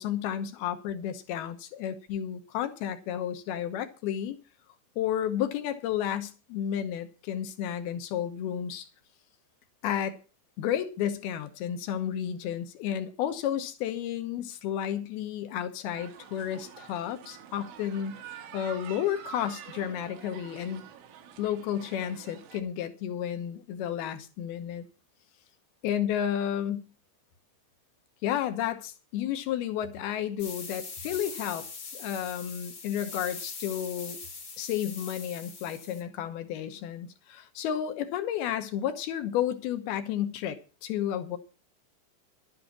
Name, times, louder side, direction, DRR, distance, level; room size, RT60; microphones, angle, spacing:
voice 1, 0.0-4.4 5.0-8.9 9.8-10.2 10.6-20.8 21.4-24.8 25.8-26.9 28.2-34.2 34.6-41.4, left 10 dB, 70° left, 2.5 m, -32 dB
sound 1, 15.9-22.6, right 9 dB, 80° right, 4.3 m, -47 dB
sound 2, 30.4-36.0, left 4 dB, 40° left, 1.4 m, -42 dB
12.0 x 9.8 x 6.1 m
omnidirectional pair, 5.6 m